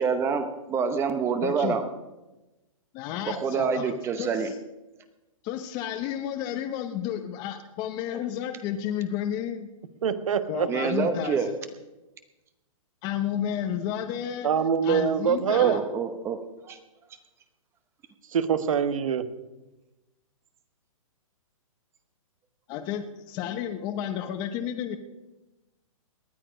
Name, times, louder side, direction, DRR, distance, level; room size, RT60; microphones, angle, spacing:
voice 1, 0.0-1.9 3.2-4.5 10.7-11.5 15.6-16.4 16.6-16.8, right 5 dB, 15° right, 9 dB, 0.8 m, -27 dB
voice 2, 1.4-1.8 2.9-4.5 5.4-9.7 10.5-11.5 13.0-14.5 14.8-15.8 22.7-25.0, left 10 dB, 25° left, 7 dB, 0.9 m, -32 dB
voice 3, 10.0-10.7 14.4-15.7 18.3-19.3, right 7 dB, 70° right, 11 dB, 1.3 m, -24 dB
19.0 x 11.5 x 5.1 m, 1.0 s
hypercardioid pair, 155°, 18 cm